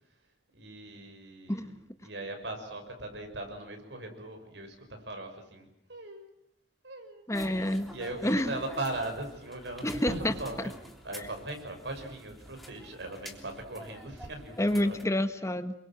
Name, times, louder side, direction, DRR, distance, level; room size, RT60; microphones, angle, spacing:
voice 1, 0.5-6.4 6.8-7.3 7.6-10.7 11.0-15.0, right 2 dB, 75° right, 5 dB, 6.1 m, -39 dB
voice 2, 7.3-7.9 8.2-8.5 9.8-10.3 14.6-15.7, left 1 dB, 15° left, 9 dB, 1.3 m, -28 dB
sound 1, 7.3-15.0, equal, ahead, 3.3 m, -46 dB
28.0 x 23.0 x 7.6 m, 0.74 s
head